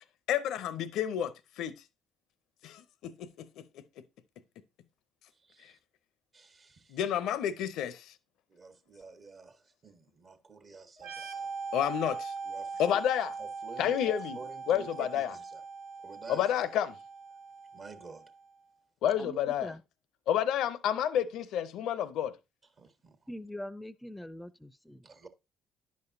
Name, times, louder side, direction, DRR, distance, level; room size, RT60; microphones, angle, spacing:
voice 1, 0.3-1.8 2.6-4.0 5.6-5.7 6.9-8.1 11.7-12.3 12.8-13.3 13.8-14.4 14.7-15.3 16.3-17.0 19.0-19.7 20.3-22.4, left 10 dB, 70° left, 0.5 m, -30 dB
voice 2, 5.3-5.8 6.3-7.0 8.5-11.5 12.4-13.0 13.4-15.6 16.0-16.5 17.7-18.3 22.8-23.2 25.0-25.3, right 4 dB, 45° right, 1.2 m, -50 dB
sound 1, 11.0-18.5, right 4 dB, 90° right, 1.7 m, -41 dB
voice 3, 19.2-19.8 23.3-25.0, left 1 dB, 10° left, 0.5 m, -43 dB
10.5 x 5.2 x 2.6 m
hypercardioid pair, 55°, 0 cm